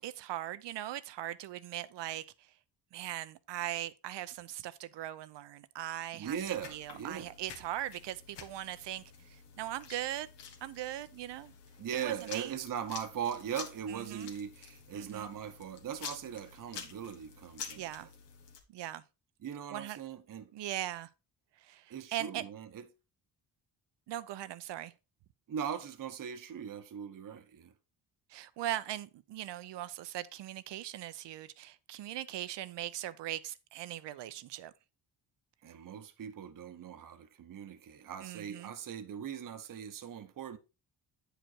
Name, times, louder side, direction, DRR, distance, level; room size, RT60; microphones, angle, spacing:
voice 1, 0.0-2.5 2.9-6.4 6.7-10.3 10.6-11.5 11.9-12.6 13.9-14.3 14.9-15.3 17.8-18.1 18.7-19.0 19.7-20.0 20.5-21.1 21.6-22.5 24.1-24.9 28.3-34.7 38.2-38.7, right 13 dB, 80° right, 0.7 m, -40 dB
voice 2, 6.1-7.3 11.8-17.8 19.4-20.5 21.9-22.8 25.5-27.7 35.6-40.6, right 8 dB, 50° right, 1.0 m, -40 dB
sound 1, 6.3-18.6, left 6 dB, 85° left, 1.7 m, -49 dB
9.0 x 5.0 x 4.3 m
cardioid pair, 120°, 41 cm